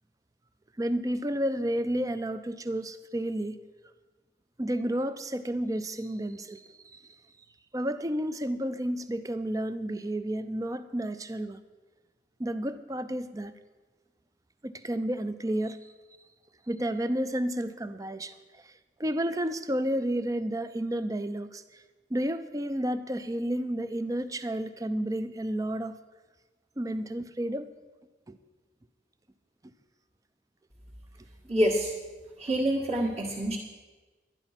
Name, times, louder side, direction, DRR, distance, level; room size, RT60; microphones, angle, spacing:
voice 1, 0.8-3.6 4.6-7.0 7.7-11.6 12.4-13.5 14.6-15.8 16.7-18.7 19.0-21.8 22.1-26.0 26.8-27.7 28.3-28.4, right 1 dB, 20° right, 12 dB, 0.5 m, -31 dB
voice 2, 31.5-31.9 32.4-33.6, equal, 35° right, -7 dB, 1.5 m, -26 dB
11.5 x 11.0 x 5.8 m, 1.3 s
head